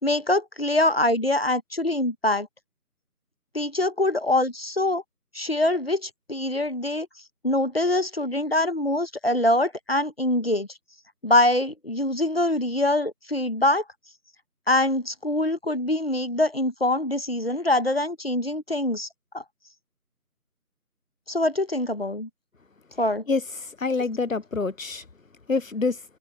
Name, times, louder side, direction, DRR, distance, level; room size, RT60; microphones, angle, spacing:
voice 1, 0.0-2.5 3.5-5.0 5.3-7.1 7.4-10.7 11.2-13.8 14.7-19.1 19.3-19.4 21.3-22.3 23.0-23.2, left 1 dB, 40° left, 1.3 m, -24 dB
voice 2, 23.3-25.1 25.5-26.0, left 4 dB, 55° left, 1.0 m, -27 dB
open air
figure-of-eight pair, 175°, 46 cm